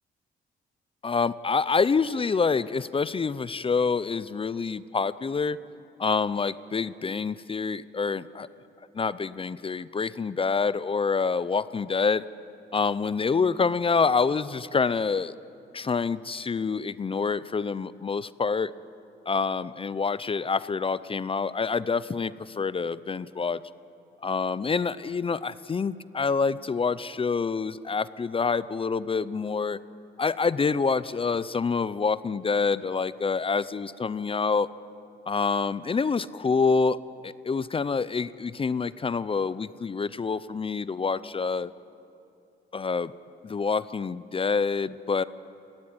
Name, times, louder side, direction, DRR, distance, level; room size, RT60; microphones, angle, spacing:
voice 1, 1.0-5.6 6.0-8.5 8.9-12.2 12.7-15.3 15.7-18.7 19.3-23.6 24.2-29.8 30.2-34.7 35.3-37.0 37.2-41.7 42.7-43.1 43.4-45.2, left 5 dB, 25° left, 17 dB, 0.6 m, -27 dB
21.5 x 17.5 x 9.6 m, 2.7 s
cardioid pair, 90°, 20 cm